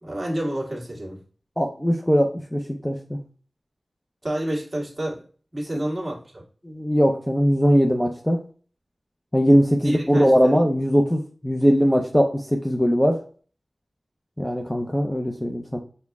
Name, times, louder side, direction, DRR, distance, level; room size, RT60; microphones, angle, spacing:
voice 1, 0.0-1.2 4.2-5.2 5.5-6.4 9.8-10.6, right 1 dB, 30° right, -2 dB, 1.7 m, -29 dB
voice 2, 1.6-3.2 6.6-8.4 9.3-13.2 14.4-15.8, equal, 5° left, 1 dB, 0.6 m, -20 dB
6.1 x 2.2 x 3.5 m, 0.40 s
wide cardioid pair, 75°, 0 cm